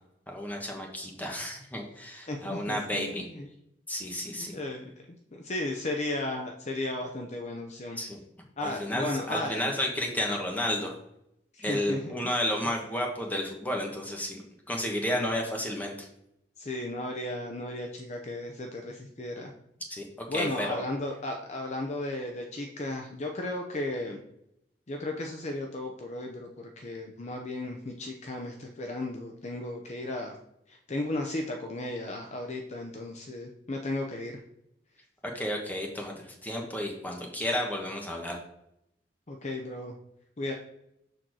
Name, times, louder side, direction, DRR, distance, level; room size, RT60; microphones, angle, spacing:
voice 1, 0.3-3.2 3.9-4.6 8.0-8.2 8.6-10.9 11.6-14.4 14.7-16.1 19.9-20.8 35.3-36.1 36.4-38.4, left 1 dB, 10° left, 1 dB, 1.5 m, -32 dB
voice 2, 2.3-3.5 4.1-4.9 5.3-8.0 8.6-9.6 11.5-12.1 15.1-15.3 16.6-19.5 20.3-24.2 24.9-30.3 30.7-34.4 39.3-39.9 40.4-40.5, left 1 dB, 40° left, 2 dB, 0.8 m, -35 dB
6.5 x 4.4 x 6.3 m, 0.80 s
head